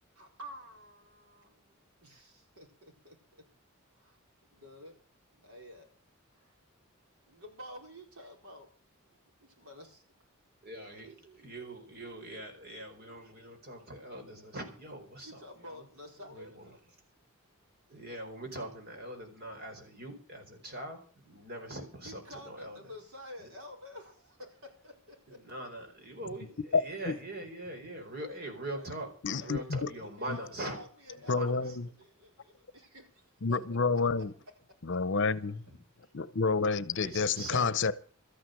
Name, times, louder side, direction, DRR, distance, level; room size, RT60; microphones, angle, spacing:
voice 1, 0.2-3.4 4.0-4.2 4.5-5.0 5.3-5.9 6.3-6.6 7.3-8.7 9.0-10.0 15.2-16.6 22.0-25.4 28.8-28.9 29.4-29.6 30.2-30.4 30.7-34.3 34.7-35.0, left 1 dB, 85° right, 4.5 m, -50 dB
voice 2, 10.6-15.8 16.2-16.8 17.9-22.9 23.4-23.5 25.3-29.1 29.4-30.8 31.3-31.8 35.7-35.8 37.0-37.8, right 1 dB, 50° right, 4.4 m, -42 dB
voice 3, 26.7-27.1 29.2-29.8 31.3-31.7 33.4-34.3 34.8-35.6 36.1-37.9, left 4 dB, 60° left, 0.8 m, -29 dB
13.5 x 9.2 x 7.9 m
head